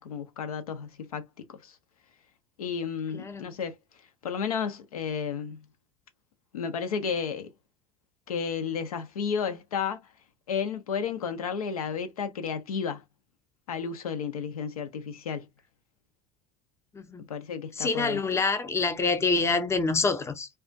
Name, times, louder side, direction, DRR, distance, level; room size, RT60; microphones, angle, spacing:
voice 1, 0.0-1.8 2.6-3.7 4.2-5.6 6.5-7.5 8.3-10.0 10.5-13.0 13.7-15.5 17.3-18.2, left 6 dB, 80° left, 0.4 m, -32 dB
voice 2, 3.1-3.5 16.9-17.3 17.8-20.5, left 4 dB, 15° left, 0.5 m, -26 dB
2.4 x 2.2 x 2.4 m
figure-of-eight pair, 65°, 18 cm